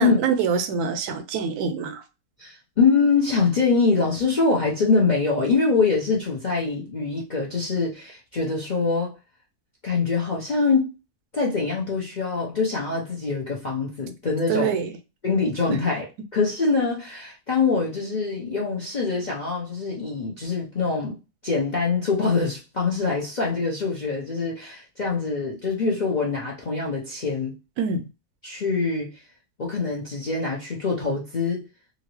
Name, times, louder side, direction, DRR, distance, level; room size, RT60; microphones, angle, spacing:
voice 1, 0.0-2.0 14.5-15.0 15.7-15.8 27.8-28.0, right 6 dB, 80° right, 1.1 m, -25 dB
voice 2, 2.4-9.1 9.8-10.9 11.3-14.8 15.2-16.1 16.3-21.2 21.4-27.5 28.4-29.2 29.6-31.7, left 4 dB, 45° left, 0.6 m, -24 dB
2.9 x 2.6 x 3.0 m
omnidirectional pair, 1.7 m